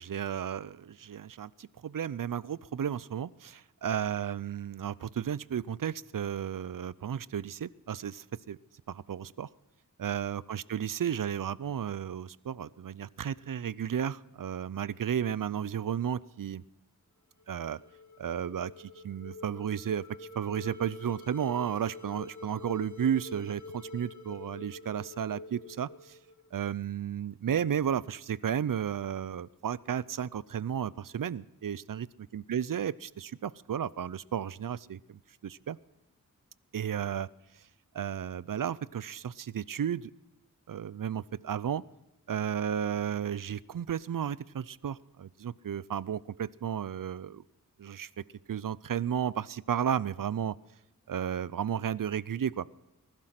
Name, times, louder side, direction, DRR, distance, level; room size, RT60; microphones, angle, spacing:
voice 1, 0.0-8.6 8.9-9.5 10.0-16.6 17.5-17.8 18.2-26.2 26.5-32.1 32.3-35.8 36.7-37.3 37.9-40.1 40.7-41.8 42.3-47.4 47.8-48.1 48.5-50.6 51.1-52.7, right 9 dB, 70° right, 21 dB, 0.5 m, -33 dB
sound 1, 17.4-26.6, left 2 dB, 55° left, 1.9 m, -46 dB
20.0 x 12.0 x 5.8 m, 0.97 s
wide cardioid pair, 60°, 34 cm